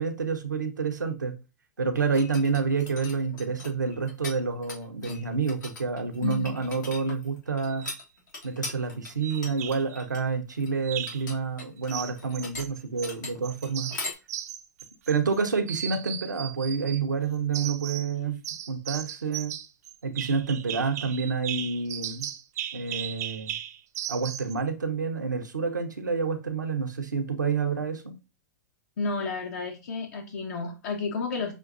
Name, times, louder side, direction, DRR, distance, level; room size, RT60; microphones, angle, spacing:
voice 1, 0.0-1.3 1.8-7.9 8.4-13.9 15.1-18.4 18.7-19.5 20.0-22.3 22.7-23.5 24.1-28.1, right 5 dB, 90° right, 0.8 m, -28 dB
sound 1, 1.9-4.4 4.6-14.1, left 3 dB, 80° left, 1.3 m, -40 dB
voice 2, 6.2-6.6 29.0-31.6, left 4 dB, 65° left, 0.8 m, -31 dB
sound 2, 7.7-8.0 9.2-10.0 10.8-11.3 11.9-13.1 13.4-15.4 15.7-17.0 17.5-18.1 18.4-24.5, right 11 dB, 60° right, 0.5 m, -37 dB
6.3 x 2.6 x 2.5 m
hypercardioid pair, 105°, 10 cm